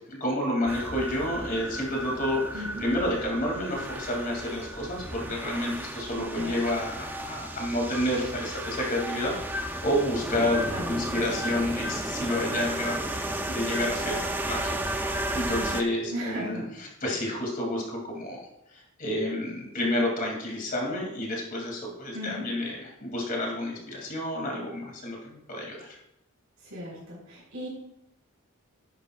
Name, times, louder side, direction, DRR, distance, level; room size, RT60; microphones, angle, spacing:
voice 1, 0.1-26.0, left 1 dB, 40° left, -1 dB, 2.6 m, -30 dB
sound 1, 0.7-15.8, right 1 dB, 10° right, 0.4 m, -33 dB
voice 2, 10.7-11.2 16.1-16.6 22.1-22.4 26.6-27.7, equal, 60° right, -6 dB, 4.1 m, -36 dB
12.5 x 11.0 x 2.4 m, 0.85 s
head